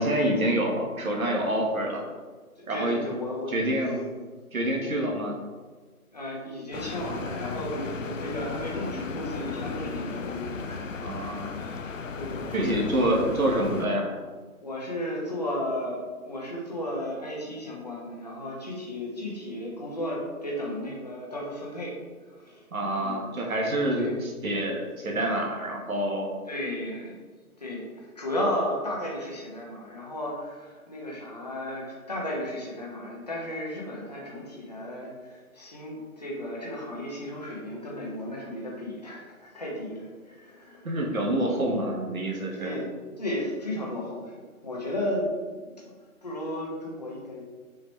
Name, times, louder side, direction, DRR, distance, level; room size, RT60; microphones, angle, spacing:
voice 1, 0.0-2.0 2.7-3.0 3.5-4.0 4.5-5.4 11.0-11.6 12.5-14.1 22.7-26.3 40.8-42.8, right 1 dB, 65° right, -1 dB, 1.6 m, -27 dB
voice 2, 2.6-3.5 3.8-4.1 6.1-11.0 11.6-12.9 14.6-22.6 22.9-23.2 23.9-24.2 26.5-27.2 27.6-40.9 41.3-41.6 42.2-42.9 43.2-44.4 44.6-45.9 46.2-47.4, left 1 dB, 25° left, -3 dB, 1.0 m, -34 dB
sound 1, 6.7-13.9, left 4 dB, 60° left, 0.5 m, -35 dB
6.2 x 4.9 x 3.3 m, 1.4 s
figure-of-eight pair, 170°, 45 cm